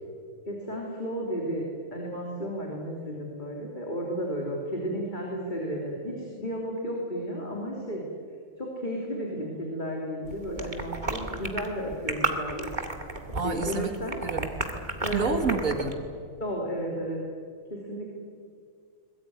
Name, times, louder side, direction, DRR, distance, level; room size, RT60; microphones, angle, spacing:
voice 1, 0.5-8.0 8.6-12.7 13.4-14.2 15.0-15.6 16.4-17.2 17.7-18.1, equal, 35° left, -1 dB, 3.6 m, -33 dB
sound 1, 10.3-15.9, right 2 dB, 35° right, 2.2 m, -33 dB
voice 2, 13.3-13.9 14.2-14.5 15.1-16.1, right 4 dB, 80° right, 6 dB, 2.4 m, -29 dB
22.5 x 21.0 x 9.5 m, 2.2 s
omnidirectional pair, 1.4 m